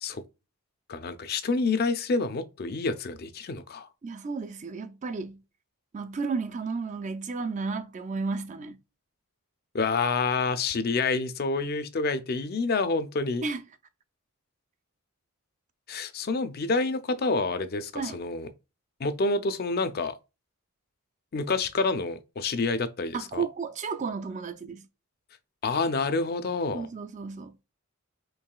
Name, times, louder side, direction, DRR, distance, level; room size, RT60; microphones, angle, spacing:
voice 1, 0.9-3.9 9.7-13.4 15.9-18.5 19.0-20.2 21.3-23.4 25.6-26.9, left 3 dB, 45° left, 0.4 m, -28 dB
voice 2, 4.0-5.4 5.9-8.8 13.4-13.6 17.9-18.2 23.1-24.9 26.7-27.6, right 4 dB, 35° right, 0.3 m, -33 dB
4.7 x 3.1 x 2.2 m
head